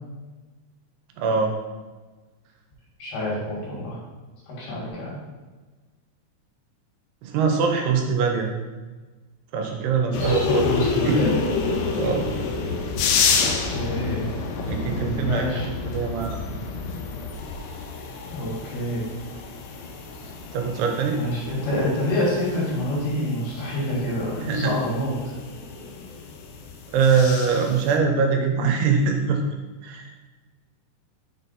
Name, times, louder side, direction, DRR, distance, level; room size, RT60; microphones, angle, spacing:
voice 1, 1.2-1.5 7.2-8.5 9.5-10.7 11.1-11.2 12.0-12.3 14.7-16.4 20.5-21.2 24.4-24.8 26.9-29.4 29.8-30.1, right 5 dB, 85° right, 3 dB, 2.8 m, -23 dB
voice 2, 3.0-4.0 4.5-5.2 10.1-11.3 13.4-14.3 14.9-15.7 18.2-19.0 21.1-25.1, left 1 dB, 70° left, -5 dB, 3.7 m, -27 dB
sound 1, 10.1-28.0, left 4 dB, 90° left, 2.8 m, -29 dB
6.7 x 4.1 x 4.0 m, 1.3 s
omnidirectional pair, 4.7 m